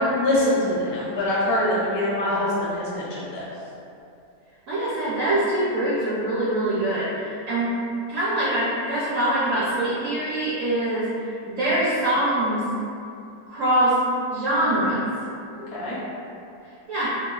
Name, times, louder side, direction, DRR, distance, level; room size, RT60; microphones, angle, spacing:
voice 1, 0.0-3.4 15.5-16.0, left 1 dB, 70° left, -7 dB, 1.1 m, -24 dB
voice 2, 4.7-7.1 7.5-7.7 8.1-11.1 11.5-12.6 13.5-14.0 14.3-15.0 16.9-17.1, right 1 dB, 70° right, -10 dB, 0.7 m, -23 dB
3.1 x 2.1 x 2.2 m, 2.6 s
omnidirectional pair, 1.8 m